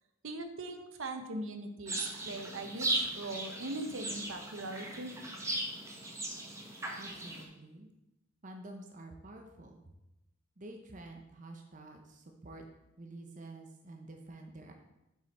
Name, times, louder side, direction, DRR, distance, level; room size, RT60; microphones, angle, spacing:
voice 1, 0.2-5.1, right 2 dB, 75° right, 7 dB, 0.9 m, -40 dB
sound 1, 1.9-7.4, right 1 dB, 15° right, 1.1 m, -37 dB
voice 2, 7.0-7.9 8.4-9.8 10.6-12.6 13.0-14.7, right 2 dB, 40° right, 3 dB, 0.7 m, -49 dB
7.8 x 5.2 x 4.2 m, 0.94 s
head